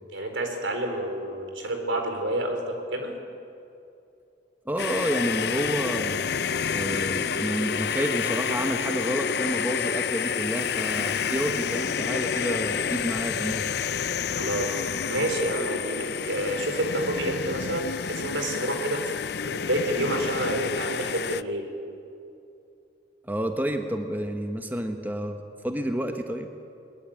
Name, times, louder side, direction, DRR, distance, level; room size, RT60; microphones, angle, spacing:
voice 1, 0.1-3.1 14.3-21.7, right 1 dB, 90° right, 4 dB, 4.2 m, -29 dB
voice 2, 4.6-6.2 6.7-13.9 23.2-26.5, equal, 10° right, 5 dB, 1.2 m, -30 dB
sound 1, 4.8-21.4, left 7 dB, 60° left, 0.5 m, -29 dB
22.0 x 20.5 x 8.9 m, 2.6 s
head